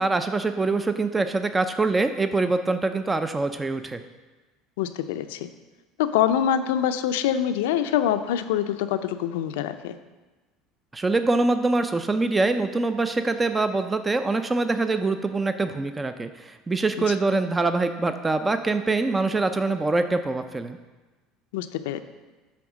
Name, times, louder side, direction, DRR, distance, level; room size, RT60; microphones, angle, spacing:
voice 1, 0.0-4.0 10.9-20.8, right 3 dB, 15° right, 9 dB, 0.4 m, -24 dB
voice 2, 4.8-5.5 6.0-9.9 17.0-17.1 21.5-22.0, left 10 dB, 90° left, 10 dB, 0.4 m, -25 dB
8.4 x 3.5 x 6.2 m, 1.2 s
supercardioid pair, 110°, 0 cm